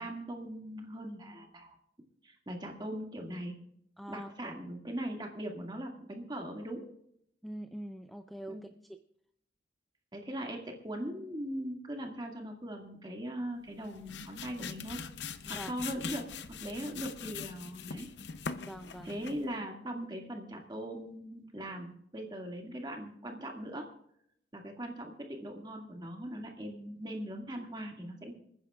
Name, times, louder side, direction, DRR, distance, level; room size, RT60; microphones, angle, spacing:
voice 1, 0.0-1.8 2.2-3.5 4.1-6.9 8.5-8.6 10.1-15.0 15.5-18.1 19.0-23.9 24.5-28.3, right 1 dB, 25° right, 1 dB, 1.9 m, -40 dB
voice 2, 4.0-4.6 7.4-9.0 15.4-15.7 18.6-19.1, right 1 dB, ahead, 7 dB, 0.4 m, -44 dB
sound 1, 13.7-19.5, left 6 dB, 70° left, 0.6 m, -42 dB
26.5 x 9.9 x 2.3 m, 0.71 s
head